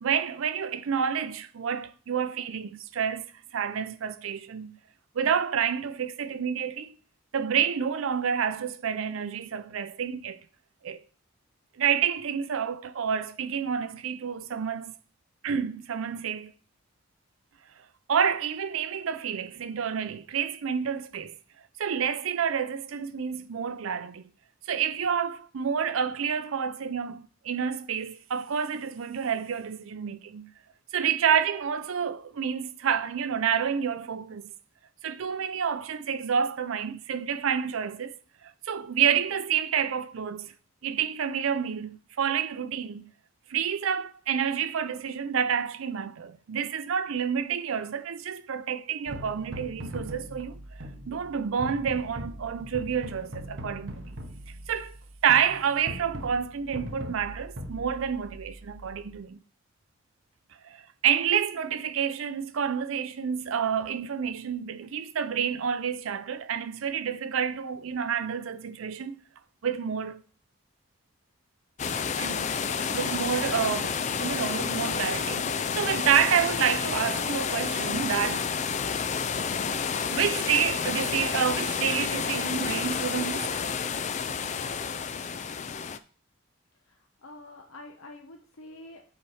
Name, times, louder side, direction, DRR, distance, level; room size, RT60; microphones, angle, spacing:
voice 1, 0.0-3.3 3.5-4.8 5.2-6.9 7.3-10.4 10.8-11.0 11.8-14.9 15.4-16.5 18.1-21.3 21.8-24.2 24.7-30.5 30.9-34.5 35.0-38.1 38.7-40.5 40.8-43.1 43.5-50.6 51.1-54.0 54.7-55.0 55.2-59.4 60.6-69.2 69.6-70.2 72.2-72.5 72.9-78.5 79.6-83.6, right 7 dB, 80° right, 0.5 m, -29 dB
sound 1, 49.1-59.2, equal, 60° right, 1.0 m, -41 dB
sound 2, 71.8-86.0, left 6 dB, 35° left, 0.3 m, -30 dB
voice 2, 87.2-89.0, left 2 dB, 85° left, 0.9 m, -46 dB
5.7 x 4.4 x 6.2 m
head